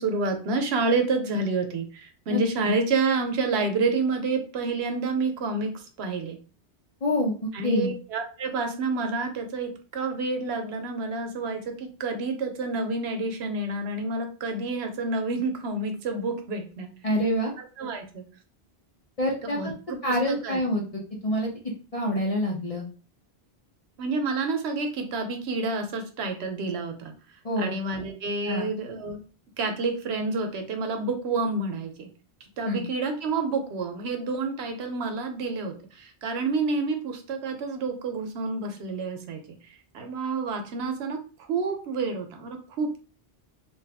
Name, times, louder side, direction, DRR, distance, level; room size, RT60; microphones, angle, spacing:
voice 1, 0.0-6.4 7.5-16.9 17.6-18.2 19.4-20.6 24.0-27.1 27.6-29.2 29.6-32.1 32.6-39.4 39.9-41.2 41.5-43.0, right 3 dB, 80° right, 5 dB, 0.9 m, -29 dB
voice 2, 7.0-7.9 17.0-17.5 19.2-19.7 20.0-21.5 21.9-22.9 27.4-27.7 28.5-28.7 32.6-32.8, equal, 40° left, -1 dB, 0.6 m, -26 dB
2.8 x 2.4 x 3.3 m, 0.36 s
omnidirectional pair, 1.1 m